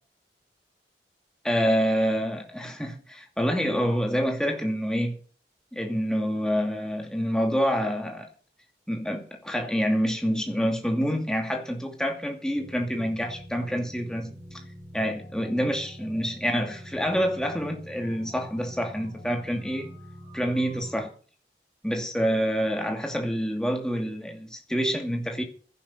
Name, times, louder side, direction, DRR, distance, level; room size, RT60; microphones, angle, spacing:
voice 1, 1.4-5.1 5.7-8.3 8.9-14.6 14.9-19.9 20.3-21.1 21.8-25.4, equal, 5° left, 2.4 m, -27 dB
sound 1, 12.6-21.1, equal, 65° right, 6.3 m, -45 dB
16.5 x 11.0 x 5.7 m
head